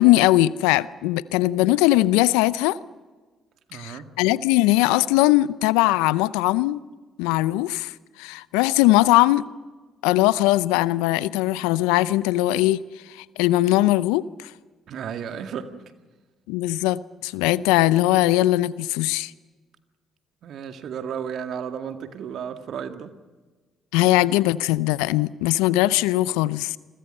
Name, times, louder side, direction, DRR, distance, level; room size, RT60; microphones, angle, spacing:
voice 1, 0.0-2.8 3.7-6.8 7.2-9.4 10.0-12.8 13.1-14.5 16.5-19.3 23.9-26.8, left 16 dB, 80° left, 0.6 m, -20 dB
voice 2, 3.7-4.1 14.9-15.8 20.4-23.1, right 7 dB, 65° right, 2.0 m, -33 dB
29.0 x 22.0 x 5.6 m
hypercardioid pair, 50°, 0 cm